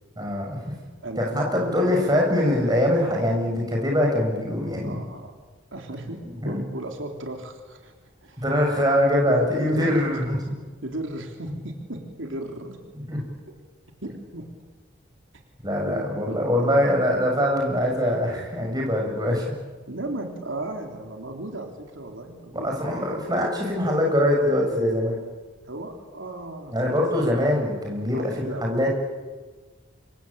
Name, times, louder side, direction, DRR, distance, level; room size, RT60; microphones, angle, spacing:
voice 1, 0.2-0.6 1.2-5.0 6.4-6.6 8.4-10.4 13.1-13.2 15.6-19.5 22.5-25.2 26.7-29.0, left 1 dB, 20° right, 0 dB, 7.1 m, -23 dB
voice 2, 1.0-2.0 4.8-5.3 5.7-7.9 8.2-8.4 9.3-9.5 9.7-10.0 10.8-12.8 14.0-14.5 15.9-17.0 19.9-22.7 25.6-27.1 28.1-28.6, right 1 dB, 80° right, 3 dB, 3.5 m, -35 dB
27.0 x 25.0 x 8.7 m, 1.3 s
head